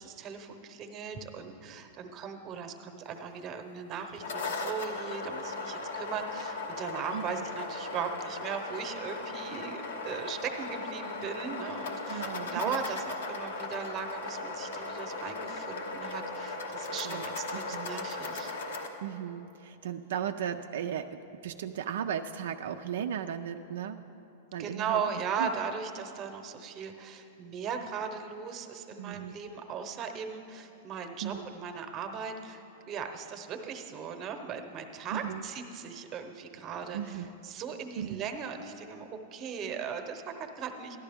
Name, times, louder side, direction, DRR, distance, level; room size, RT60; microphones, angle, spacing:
voice 1, 0.0-18.5 24.6-41.0, right 6 dB, 30° right, 6 dB, 0.8 m, -38 dB
sound 1, 4.0-18.9, left 3 dB, 80° left, 1.0 m, -37 dB
voice 2, 12.1-12.8 17.0-17.3 17.7-17.9 19.0-24.0 24.5-25.0 25.4-25.5 29.0-29.4 31.2-31.5 35.1-35.5 36.9-37.3 38.0-38.2, right 9 dB, 80° right, 6 dB, 0.3 m, -36 dB
13.0 x 11.5 x 3.5 m, 3.0 s
hypercardioid pair, 135°, 0 cm